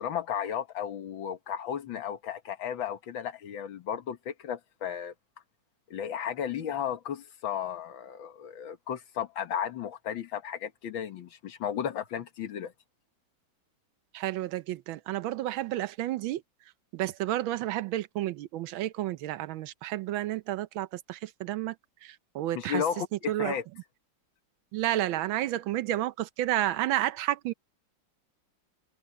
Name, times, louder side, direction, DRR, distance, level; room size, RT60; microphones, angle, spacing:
voice 1, 0.0-5.1 5.9-12.7 22.6-23.6, left 8 dB, 80° left, 2.1 m, -34 dB
voice 2, 14.1-16.4 16.9-21.8 22.0-22.8 23.3-23.6 24.7-27.5, right 14 dB, 90° right, 1.5 m, -31 dB
omnidirectional pair, 2.1 m